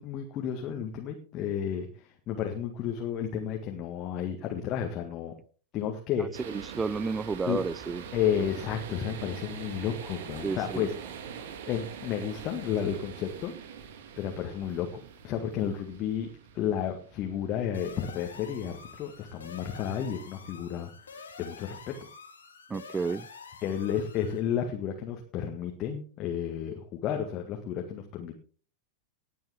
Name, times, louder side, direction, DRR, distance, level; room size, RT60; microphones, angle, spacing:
voice 1, 0.0-5.3 5.7-6.3 7.5-7.6 8.1-10.9 11.7-13.5 14.2-16.3 16.5-20.9 21.4-21.9 23.6-28.4, left 9 dB, 35° left, 2.0 m, -32 dB
voice 2, 6.2-8.0 10.4-10.9 22.7-23.3, right 4 dB, 15° right, 0.5 m, -32 dB
sound 1, 6.3-20.3, right 7 dB, 55° right, 1.9 m, -44 dB
sound 2, 17.7-24.4, left 5 dB, 70° left, 2.9 m, -48 dB
19.0 x 8.5 x 3.7 m
figure-of-eight pair, 90°, 0 cm